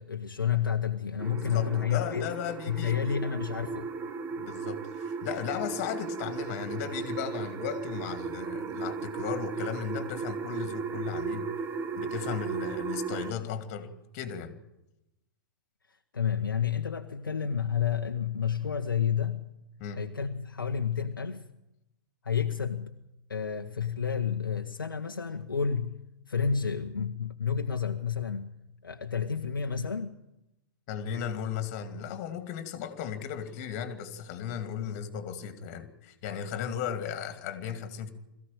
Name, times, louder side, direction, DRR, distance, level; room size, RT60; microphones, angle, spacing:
voice 1, 0.0-2.3 2.7-3.9 16.1-19.4 20.0-21.4 22.2-22.9 23.3-25.9 26.3-28.5 28.8-30.2, left 7 dB, 75° left, 1.1 m, -30 dB
sound 1, 1.2-13.3, right 5 dB, 20° right, 1.2 m, -36 dB
voice 2, 1.3-3.2 4.4-11.5 12.0-14.6 19.8-20.0 30.9-38.1, left 8 dB, 40° left, 2.6 m, -36 dB
22.0 x 15.0 x 9.1 m
figure-of-eight pair, 105°, 11 cm